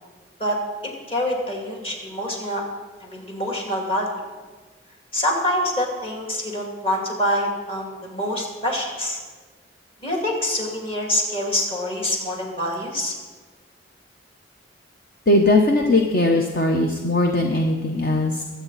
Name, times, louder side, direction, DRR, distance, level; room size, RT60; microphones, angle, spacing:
voice 1, 1.1-2.6 3.0-4.1 5.1-9.2 10.0-13.1, left 1 dB, 30° left, 0 dB, 2.5 m, -25 dB
voice 2, 15.3-18.4, left 2 dB, 50° left, 2 dB, 0.9 m, -19 dB
22.0 x 8.2 x 4.1 m, 1.4 s
head